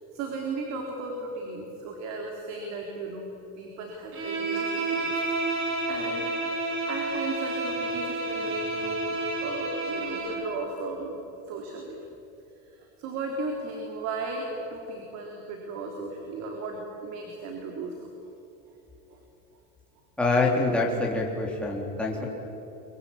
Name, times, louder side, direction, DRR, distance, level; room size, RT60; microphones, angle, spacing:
voice 1, 0.1-5.1 5.4-6.3 6.9-11.2 11.5-12.0 12.6-18.1 19.1-19.2, right 3 dB, 60° right, 2 dB, 3.8 m, -36 dB
Bowed string instrument, 4.1-10.5, right 2 dB, 40° right, 5.4 m, -30 dB
voice 2, 20.2-22.3, left 3 dB, 5° left, -2 dB, 3.4 m, -25 dB
24.0 x 23.5 x 8.7 m, 3.0 s
cardioid pair, 145°, 31 cm